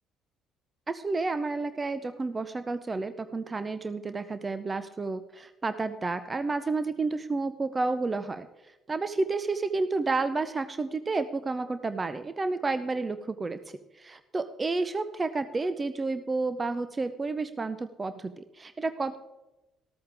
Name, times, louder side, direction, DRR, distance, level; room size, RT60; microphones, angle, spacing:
voice 1, 0.9-8.5 8.9-13.6 13.9-19.2, right 3 dB, 25° right, 12 dB, 0.7 m, -30 dB
14.0 x 13.5 x 3.5 m, 1.0 s
figure-of-eight pair, 50°, 0 cm